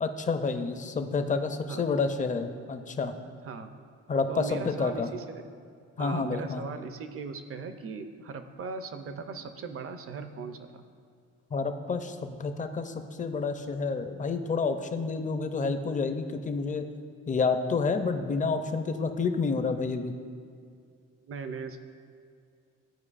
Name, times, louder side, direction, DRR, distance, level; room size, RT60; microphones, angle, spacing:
voice 1, 0.0-3.1 4.1-5.1 6.0-6.6 11.5-16.9 17.3-20.1, left 4 dB, 25° left, 8 dB, 0.5 m, -29 dB
voice 2, 3.4-3.8 4.3-5.4 6.0-10.8 21.3-21.8, right 4 dB, 50° right, 9 dB, 0.6 m, -38 dB
12.0 x 4.6 x 2.5 m, 2.3 s
cardioid pair, 90°, 30 cm